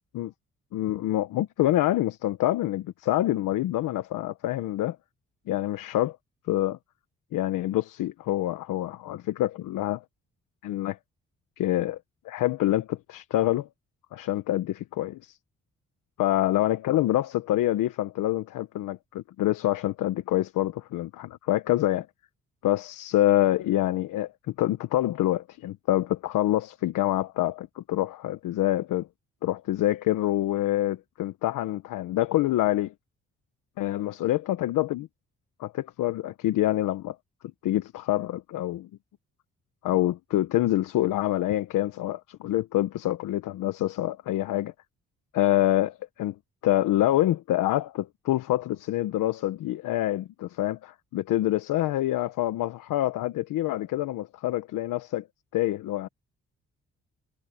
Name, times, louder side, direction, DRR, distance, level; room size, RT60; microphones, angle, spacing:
voice 1, 0.7-5.0 5.5-6.2 6.5-6.8 7.3-10.0 10.6-11.0 11.6-12.0 12.2-13.7 14.1-15.4 16.2-22.1 22.6-29.1 29.4-32.9 33.8-35.1 35.6-37.2 37.6-38.9 39.8-44.7 45.3-46.3 46.6-55.3 55.5-56.1, left 14 dB, 80° left, 1.2 m, -26 dB
supercardioid pair, 55°, 31 cm